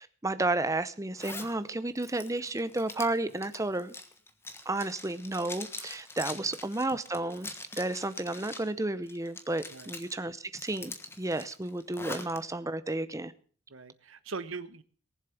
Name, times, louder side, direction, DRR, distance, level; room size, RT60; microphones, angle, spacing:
voice 1, 0.0-4.0 4.7-13.3, right 2 dB, 15° right, 14 dB, 0.7 m, -32 dB
Zipper (clothing), 1.2-1.5 2.0-8.7 9.1-10.1 10.5-12.4, left 2 dB, 10° left, 1.3 m, -43 dB
voice 2, 13.7-14.8, right 4 dB, 85° right, 14 dB, 1.0 m, -41 dB
19.0 x 7.4 x 7.0 m, 0.44 s
head